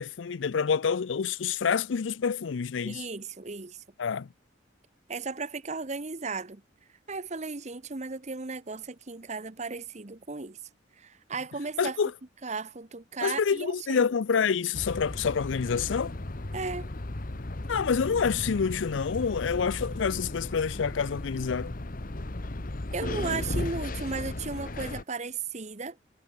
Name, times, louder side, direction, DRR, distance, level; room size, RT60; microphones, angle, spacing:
voice 1, 0.0-3.0 4.0-4.3 11.8-12.1 13.2-16.1 17.7-21.7, left 6 dB, 80° left, 0.5 m, -27 dB
voice 2, 2.8-3.8 5.1-6.6 7.1-10.6 11.0-12.0 12.4-14.1 16.5-16.9 22.9-26.0, right 4 dB, 40° right, 1.1 m, -35 dB
sound 1, 14.7-25.0, left 2 dB, 45° left, 1.2 m, -35 dB
head